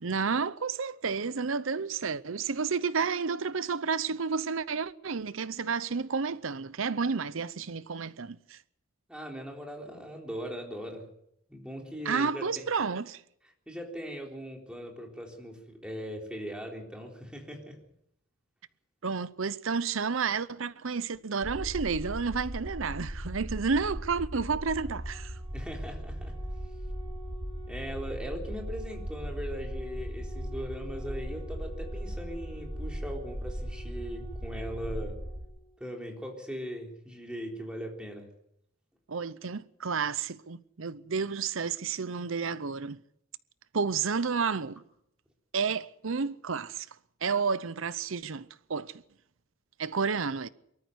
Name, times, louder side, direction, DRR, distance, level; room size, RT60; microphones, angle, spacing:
voice 1, 0.0-8.6 12.0-13.2 19.0-25.4 39.1-43.0 43.7-44.8 45.5-46.9 47.2-48.9 49.8-50.5, right 5 dB, 70° right, 0.7 m, -31 dB
voice 2, 9.1-11.1 11.5-12.7 13.7-17.8 25.5-26.4 27.7-35.2 35.8-38.3, equal, 5° right, 3.8 m, -39 dB
sound 1, 21.4-35.4, equal, 50° right, 3.9 m, -38 dB
Organ, 24.8-35.8, right 1 dB, 25° left, 4.8 m, -52 dB
23.5 x 13.5 x 8.1 m
head